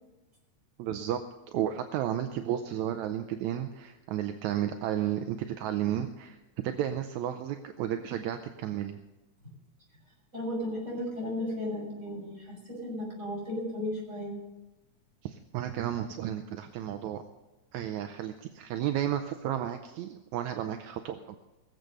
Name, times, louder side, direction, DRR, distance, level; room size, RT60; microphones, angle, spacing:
voice 1, 0.8-1.2 1.5-6.4 6.6-9.0 15.2-17.2 17.7-21.4, right 10 dB, 80° right, 7 dB, 2.0 m, -32 dB
voice 2, 10.3-14.4, left 1 dB, 20° right, -4 dB, 7.6 m, -35 dB
20.5 x 7.7 x 6.7 m, 1.1 s
omnidirectional pair, 3.5 m